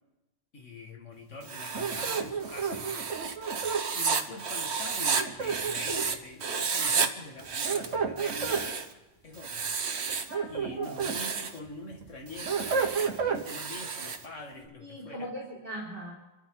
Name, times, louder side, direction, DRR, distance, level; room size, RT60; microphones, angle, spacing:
voice 1, 0.5-3.0 3.9-8.8 9.2-9.8 10.5-15.3, left 2 dB, 80° left, 2 dB, 2.4 m, -44 dB
Writing, 1.4-6.2 6.4-7.1 7.4-8.9 9.4-10.3 10.8-11.6 12.3-14.3, right 5 dB, 60° right, 1.3 m, -32 dB
sound 1, 1.7-3.9 5.1-6.2 7.4-8.7 10.1-11.2 11.7-13.4, right 6 dB, 80° right, 1.7 m, -31 dB
voice 2, 10.3-11.0 14.5-16.1, equal, 45° right, -5 dB, 3.9 m, -40 dB
27.5 x 13.0 x 3.9 m, 1.0 s
omnidirectional pair, 1.3 m